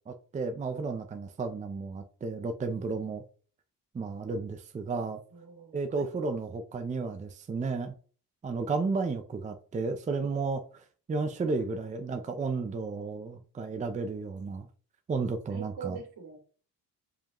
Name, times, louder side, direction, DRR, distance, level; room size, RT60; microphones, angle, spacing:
voice 1, 0.1-3.2 3.9-5.2 5.7-7.9 8.4-14.7 15.1-16.0, right 4 dB, 20° right, 0.5 m, -33 dB
voice 2, 5.3-5.8 11.4-12.1 15.5-16.4, right 7 dB, 75° right, 2.2 m, -44 dB
7.3 x 4.9 x 3.0 m
cardioid pair, 175°, 38 cm